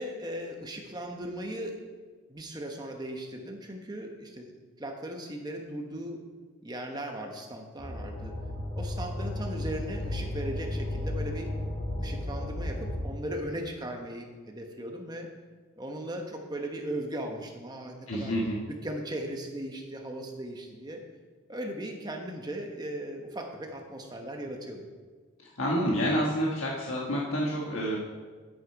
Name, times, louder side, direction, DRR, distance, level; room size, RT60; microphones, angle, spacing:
voice 1, 0.0-1.8 2.3-6.2 6.6-8.4 8.7-11.5 12.0-15.3 15.8-18.4 18.7-21.0 21.5-24.9, right 1 dB, 20° right, 3 dB, 1.0 m, -38 dB
sound 1, 7.8-13.0, left 1 dB, 20° left, 2.2 m, -34 dB
voice 2, 18.1-18.6 25.4-28.0, equal, 70° left, -3 dB, 1.4 m, -28 dB
10.0 x 9.0 x 4.7 m, 1.5 s
head